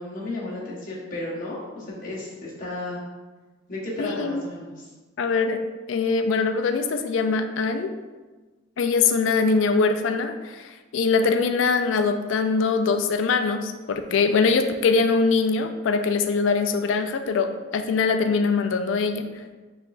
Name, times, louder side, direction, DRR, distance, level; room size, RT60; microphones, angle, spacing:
voice 1, 0.0-3.0 3.7-4.8, left 2 dB, 45° left, -6 dB, 1.2 m, -33 dB
voice 2, 4.0-4.5 5.2-5.6 5.9-7.9 8.8-19.3, left 4 dB, 80° left, 8 dB, 0.4 m, -22 dB
4.6 x 3.2 x 2.5 m, 1.3 s
head